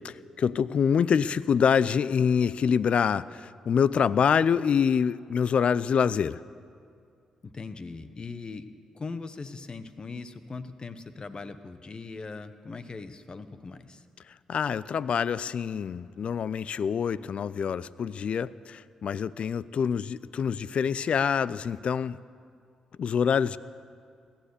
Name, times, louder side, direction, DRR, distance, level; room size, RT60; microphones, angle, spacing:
voice 1, 0.0-6.4 14.5-22.2 23.0-23.6, left 7 dB, 60° left, 19 dB, 0.4 m, -26 dB
voice 2, 7.4-8.7 8.9-14.0, left 4 dB, 40° left, 11 dB, 1.0 m, -40 dB
17.5 x 12.0 x 6.7 m, 2.3 s
hypercardioid pair, 45°, 2 cm